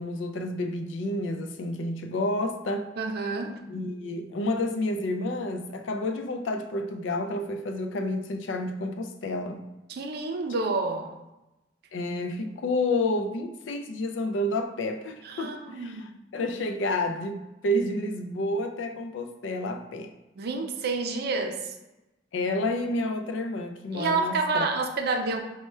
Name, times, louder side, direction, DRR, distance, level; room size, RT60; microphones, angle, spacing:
voice 1, 0.0-2.9 3.7-9.7 11.9-20.1 22.3-24.6, left 1 dB, 90° left, 6 dB, 0.4 m, -30 dB
voice 2, 3.0-3.6 9.9-11.1 15.2-16.1 20.4-21.7 23.9-25.4, right 3 dB, 60° right, 4 dB, 0.4 m, -29 dB
3.3 x 2.2 x 4.2 m, 0.98 s
head